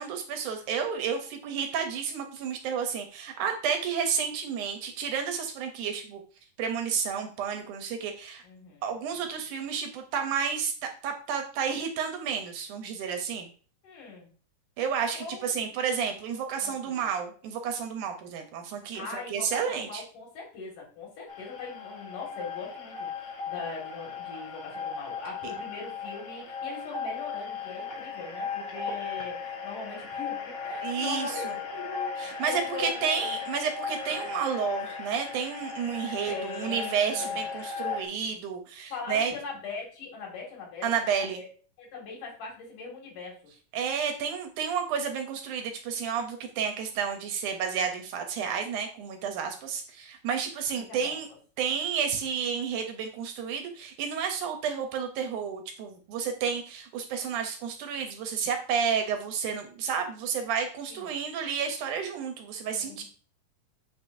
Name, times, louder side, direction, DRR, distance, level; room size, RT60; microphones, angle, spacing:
voice 1, 0.0-6.2 6.6-8.4 8.8-13.5 14.8-20.0 30.8-31.6 32.2-39.3 40.8-41.4 43.7-51.3 51.6-63.0, right 7 dB, 75° right, 5 dB, 2.2 m, -31 dB
voice 2, 8.4-8.9 13.8-14.3 15.1-15.7 16.3-17.1 18.9-33.2 36.3-37.4 38.9-41.5 41.8-43.4 50.8-51.2 60.9-61.2 62.7-63.0, left 4 dB, 70° left, -1 dB, 3.5 m, -41 dB
sound 1, 21.3-38.0, left 5 dB, 55° left, 1.3 m, -36 dB
8.2 x 5.1 x 2.6 m, 0.40 s
omnidirectional pair, 3.8 m